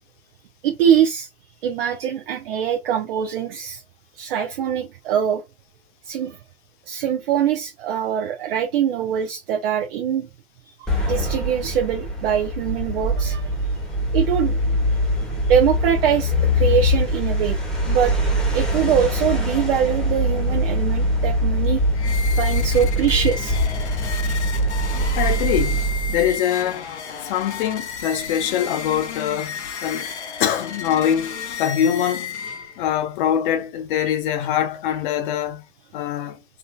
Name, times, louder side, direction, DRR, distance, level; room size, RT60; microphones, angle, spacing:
voice 1, 0.6-1.3 1.6-3.8 4.2-5.4 6.0-6.4 6.9-10.3 10.6-13.5 14.1-14.7 15.2-17.6 17.9-18.2 18.5-21.8 22.4-23.9 24.2-24.4, right 9 dB, 60° right, 0.6 m, -23 dB
sound 1, 10.9-26.4, equal, ahead, 1.1 m, -22 dB
sound 2, 21.9-33.0, left 6 dB, 80° left, 0.9 m, -33 dB
voice 2, 25.2-26.9 27.2-30.1 30.4-32.5 32.8-35.6 35.9-36.4, left 10 dB, 50° left, 0.9 m, -23 dB
3.5 x 2.7 x 2.2 m
hypercardioid pair, 115°, 33 cm